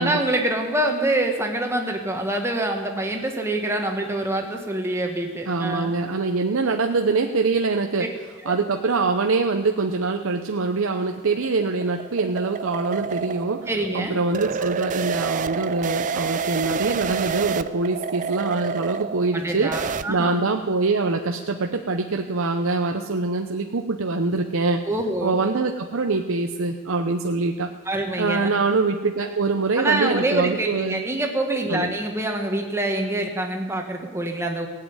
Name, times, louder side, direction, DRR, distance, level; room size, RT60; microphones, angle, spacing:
voice 1, 0.0-5.9 8.4-8.6 13.7-14.2 19.3-20.4 24.8-25.4 27.8-28.5 29.8-34.7, right 1 dB, 10° right, 2 dB, 1.6 m, -25 dB
voice 2, 5.5-8.1 8.5-13.7 13.9-19.7 20.1-24.8 25.2-27.7 28.2-31.0 31.7-31.9, right 3 dB, 60° right, 4 dB, 0.7 m, -24 dB
sound 1, 11.1-20.0, right 5 dB, 35° right, 0.4 m, -29 dB
16.5 x 7.7 x 9.5 m, 1.4 s
head